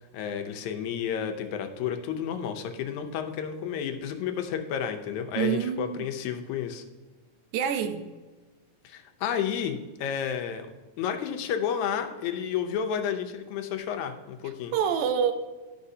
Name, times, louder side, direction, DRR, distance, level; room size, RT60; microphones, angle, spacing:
voice 1, 0.1-6.8 8.8-10.7 11.0-14.7, left 8 dB, 80° left, 6 dB, 2.0 m, -31 dB
voice 2, 5.4-6.1 7.5-8.0 14.7-15.3, right 8 dB, 85° right, 8 dB, 2.1 m, -26 dB
11.5 x 5.8 x 2.7 m, 1.3 s
omnidirectional pair, 3.4 m